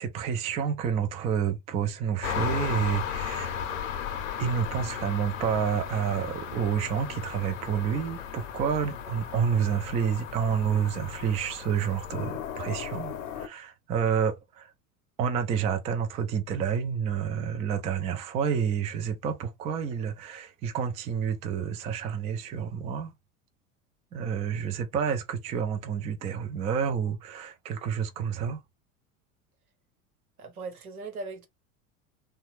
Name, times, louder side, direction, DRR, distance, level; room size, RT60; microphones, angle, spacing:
voice 1, 0.0-3.8 4.4-14.7 15.2-23.1 24.1-28.6, right 7 dB, 15° right, 0.3 m, -29 dB
sound 1, 2.2-13.5, left 8 dB, 60° left, 0.7 m, -35 dB
voice 2, 30.4-31.5, right 3 dB, 80° right, 0.9 m, -38 dB
3.1 x 2.2 x 3.0 m
figure-of-eight pair, 80°, 43 cm